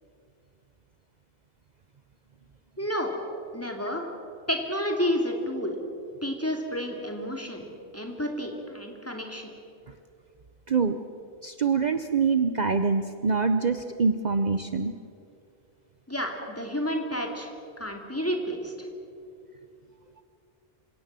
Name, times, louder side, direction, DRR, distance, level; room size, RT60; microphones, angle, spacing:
voice 1, 2.8-3.1 3.5-4.1 4.5-5.8 6.2-7.6 7.9-9.5 16.1-17.5 17.8-18.9, equal, 15° left, 2 dB, 2.8 m, -30 dB
voice 2, 10.7-11.0 11.4-14.9, right 5 dB, 45° right, 9 dB, 0.9 m, -25 dB
27.5 x 17.0 x 7.5 m, 2.6 s
omnidirectional pair, 1.0 m